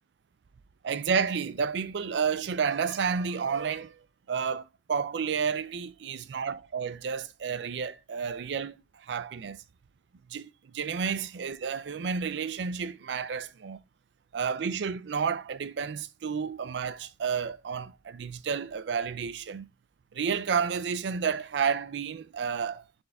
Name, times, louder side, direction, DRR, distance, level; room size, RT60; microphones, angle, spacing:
voice 1, 0.8-4.0 4.3-9.6 10.3-13.8 14.3-19.7 20.1-22.8, right 6 dB, 70° right, 0.4 m, -31 dB
4.3 x 3.4 x 3.5 m
head